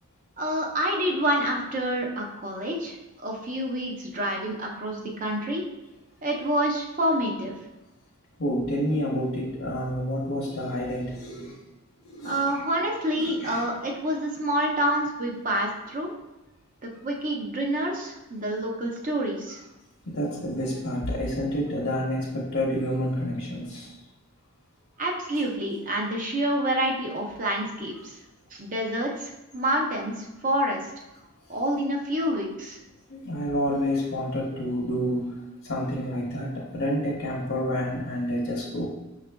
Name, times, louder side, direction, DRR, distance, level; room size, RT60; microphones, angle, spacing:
voice 1, 0.4-5.6 6.2-7.6 12.2-16.1 16.8-19.6 25.0-28.2 28.5-30.8 31.5-32.8, right 1 dB, 35° right, 0 dB, 0.5 m, -28 dB
voice 2, 8.4-11.6 12.0-12.4 13.2-13.6 20.0-23.9 33.1-38.9, equal, 65° left, -4 dB, 0.7 m, -29 dB
5.7 x 2.4 x 2.2 m, 0.99 s
head